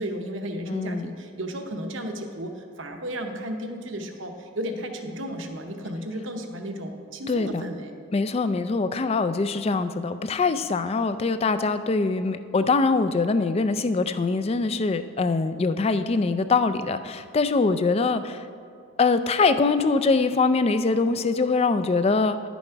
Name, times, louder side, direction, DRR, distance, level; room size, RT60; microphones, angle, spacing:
voice 1, 0.0-7.9, equal, 65° right, 5 dB, 0.9 m, -33 dB
voice 2, 0.7-1.1 7.3-7.6 8.1-18.4 19.0-22.4, left 4 dB, 30° left, 11 dB, 0.3 m, -23 dB
10.5 x 7.1 x 4.5 m, 2.3 s
head